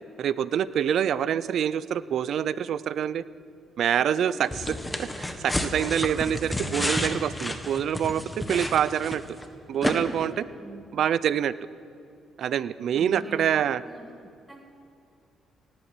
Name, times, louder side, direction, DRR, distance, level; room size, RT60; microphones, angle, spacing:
voice 1, 0.2-3.2 3.8-4.5 5.0-9.2 9.7-10.5 10.9-11.5 12.4-13.8, right 9 dB, 70° right, 17 dB, 0.5 m, -26 dB
voice 2, 3.9-4.7 10.6-10.9 12.9-14.1 14.5-14.6, right 1 dB, 20° right, 2 dB, 1.8 m, -44 dB
sound 1, 4.5-9.4 9.8-9.9, left 1 dB, 10° left, 1.5 m, -30 dB
17.5 x 9.0 x 8.6 m, 2.5 s
cardioid pair, 90°, 0 cm